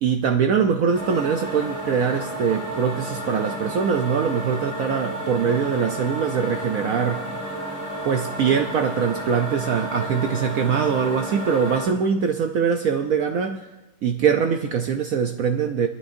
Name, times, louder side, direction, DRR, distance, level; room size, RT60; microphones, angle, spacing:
voice 1, 0.0-7.3 8.0-13.6 14.0-15.9, right 6 dB, 85° right, 5 dB, 0.7 m, -23 dB
sound 1, 0.9-11.9, right 1 dB, 55° left, 6.0 m, -31 dB
22.5 x 11.5 x 2.6 m, 1.0 s
omnidirectional pair, 2.2 m